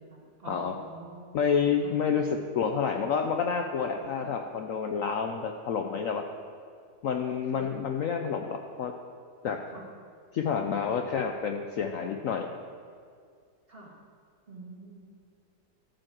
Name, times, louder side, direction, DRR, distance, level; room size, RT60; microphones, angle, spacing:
voice 1, 0.0-1.3 1.8-2.0 4.2-4.3 7.5-7.7 9.7-9.8 13.7-13.9 14.5-15.1, right 3 dB, 35° right, -2 dB, 1.8 m, -46 dB
voice 2, 1.3-6.2 7.0-8.9 9.4-9.6 10.3-12.5, left 6 dB, 65° left, 4 dB, 0.9 m, -29 dB
13.0 x 5.1 x 7.4 m, 2.2 s
omnidirectional pair, 1.8 m